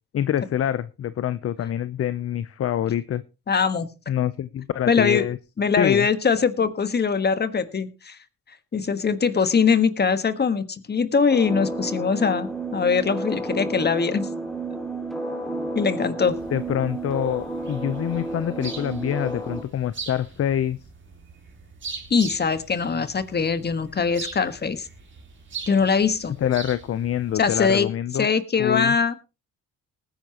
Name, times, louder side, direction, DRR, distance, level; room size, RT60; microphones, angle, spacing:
voice 1, 0.1-3.2 4.1-5.4 5.8-6.1 16.5-20.8 26.4-28.3 28.6-29.0, left 10 dB, 50° left, 15 dB, 0.7 m, -26 dB
voice 2, 3.5-3.9 4.9-5.2 5.6-8.2 8.7-14.3 15.7-16.4 22.1-24.9 25.7-26.4 27.4-27.9 28.2-29.1, left 5 dB, 35° left, 11 dB, 1.4 m, -22 dB
sound 1, 11.3-19.6, right 2 dB, ahead, 2.5 m, -31 dB
sound 2, 16.2-27.8, right 4 dB, 40° right, 3.7 m, -41 dB
19.5 x 10.0 x 2.9 m, 0.29 s
cardioid pair, 90°, 30 cm